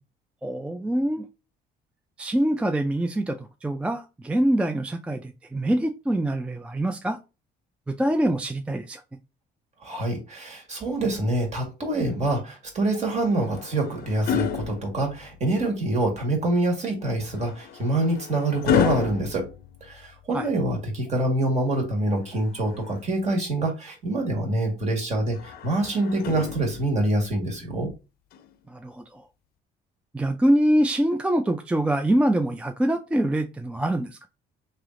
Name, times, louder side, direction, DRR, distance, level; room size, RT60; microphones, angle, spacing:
voice 1, 0.4-1.2 2.2-7.2 7.9-9.0 20.3-20.5 28.7-29.2 30.1-34.3, right 1 dB, 5° right, 0.3 m, -24 dB
voice 2, 9.8-19.4 19.8-27.9, right 2 dB, 40° right, 1.7 m, -26 dB
sound 1, 13.1-15.6 17.2-20.4 22.1-23.3 25.3-27.1 28.3-28.5, left 9 dB, 60° left, 0.5 m, -31 dB
3.3 x 2.8 x 3.7 m
cardioid pair, 110°, 17 cm